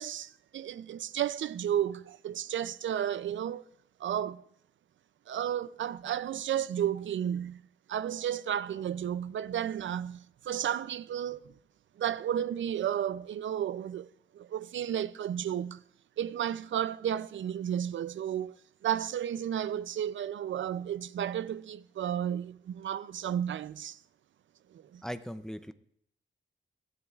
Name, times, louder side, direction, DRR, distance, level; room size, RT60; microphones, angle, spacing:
voice 1, 0.0-3.6 4.0-4.4 5.3-7.6 7.9-11.5 12.0-14.1 14.3-15.8 16.2-18.5 18.8-24.0 24.7-25.0, right 10 dB, 65° right, 0.4 m, -33 dB
voice 2, 25.0-25.7, equal, 5° left, 0.4 m, -38 dB
22.5 x 13.0 x 2.4 m
wide cardioid pair, 175°, 21 cm